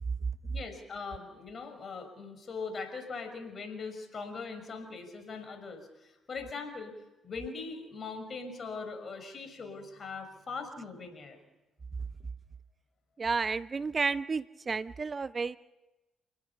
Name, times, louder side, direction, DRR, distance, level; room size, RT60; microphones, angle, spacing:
voice 1, 0.5-6.9 7.2-11.4, left 4 dB, 50° left, 8 dB, 5.9 m, -41 dB
voice 2, 13.2-15.6, right 4 dB, 40° right, 16 dB, 0.6 m, -31 dB
29.0 x 19.0 x 5.8 m, 1.0 s
hypercardioid pair, 50°, 0 cm